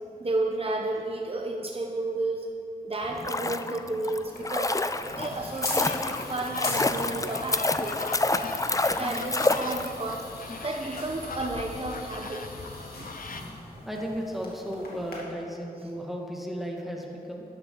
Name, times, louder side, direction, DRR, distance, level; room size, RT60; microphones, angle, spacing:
voice 1, 0.2-2.5 2.8-4.7 5.1-8.0 9.0-10.2 10.6-12.4 13.0-13.1, right 2 dB, 35° right, 1 dB, 1.0 m, -32 dB
sound 1, 3.0-10.2 10.5-10.6, left 2 dB, 20° left, 0.5 m, -28 dB
sound 2, 4.2-15.2, left 2 dB, 85° left, 2.3 m, -42 dB
sound 3, 5.0-13.4, left 4 dB, 60° left, 0.7 m, -40 dB
voice 2, 13.9-17.4, equal, ahead, -1 dB, 2.0 m, -34 dB
13.0 x 10.5 x 3.9 m, 2.8 s
cardioid pair, 55°, 16 cm